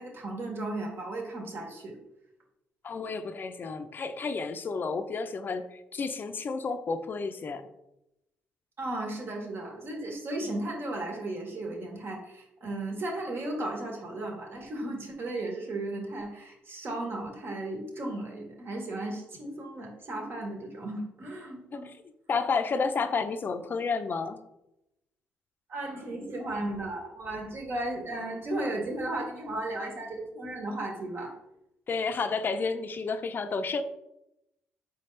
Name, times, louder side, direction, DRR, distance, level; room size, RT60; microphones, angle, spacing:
voice 1, 0.0-2.0 8.8-21.9 25.7-31.3, right 2 dB, 50° right, 1 dB, 1.3 m, -35 dB
voice 2, 2.8-7.7 21.7-22.0 22.3-24.4 31.9-33.8, left 4 dB, 40° left, 9 dB, 0.5 m, -31 dB
4.3 x 3.4 x 3.2 m, 0.88 s
supercardioid pair, 60°, 5 cm